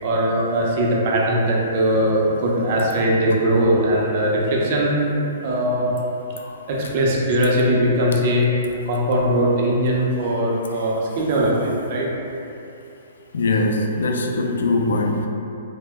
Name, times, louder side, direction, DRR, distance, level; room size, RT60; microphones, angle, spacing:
voice 1, 0.0-5.1 5.4-5.9 6.7-12.1, equal, 35° right, -3 dB, 0.5 m, -20 dB
voice 2, 13.3-15.3, left 2 dB, 85° left, 3 dB, 0.3 m, -21 dB
2.8 x 2.1 x 3.3 m, 2.8 s
hypercardioid pair, 170°, 0 cm